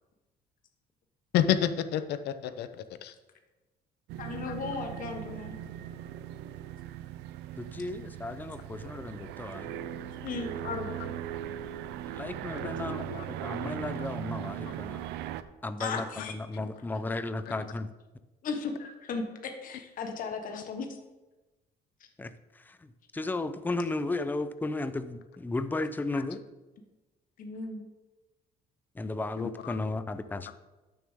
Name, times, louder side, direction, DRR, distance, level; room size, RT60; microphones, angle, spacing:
voice 1, 1.3-3.1 11.0-11.1 12.6-13.3 13.6-14.1 14.7-14.8 16.2-16.3 20.5-20.6 29.4-29.8, left 10 dB, 75° left, 11 dB, 0.7 m, -31 dB
sound 1, 4.1-15.4, right 11 dB, 90° right, 0.5 m, -39 dB
voice 2, 4.2-5.5 10.2-10.9 13.4-13.5 15.8-16.3 18.4-20.9 27.4-27.8, left 4 dB, 55° left, 5 dB, 1.2 m, -36 dB
voice 3, 7.6-9.8 12.1-15.1 15.6-17.9 22.2-26.4 28.9-30.5, left 2 dB, 10° left, 12 dB, 0.5 m, -35 dB
12.5 x 7.0 x 3.7 m, 1.1 s
cardioid pair, 110°, 17 cm